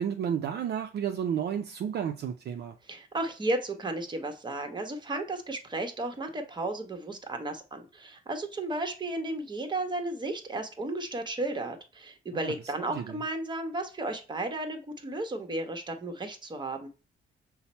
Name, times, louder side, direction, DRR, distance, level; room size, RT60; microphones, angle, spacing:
voice 1, 0.0-2.8 12.3-12.5 12.9-13.2, right 8 dB, 55° right, 0.5 m, -32 dB
voice 2, 2.8-16.9, right 2 dB, 20° right, 0.9 m, -34 dB
5.6 x 2.0 x 4.2 m
cardioid pair, 90°, 20 cm